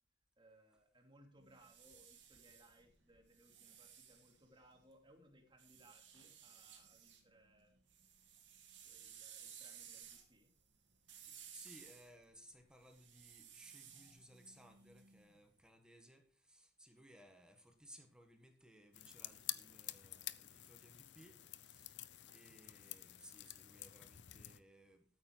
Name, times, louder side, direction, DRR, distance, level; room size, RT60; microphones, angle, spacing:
voice 1, 0.4-7.7 8.8-10.5, right 1 dB, 25° right, 3 dB, 2.8 m, -66 dB
sound 1, 1.4-4.9 5.6-7.2 7.6-15.5, right 8 dB, 85° right, 3.1 m, -58 dB
voice 2, 11.2-16.2 16.5-21.4 21.6-22.0 22.3-25.0, equal, 5° right, 5 dB, 1.7 m, -62 dB
sound 2, 18.9-24.6, left 14 dB, 70° left, 0.7 m, -49 dB
13.5 x 8.8 x 4.7 m, 0.44 s
head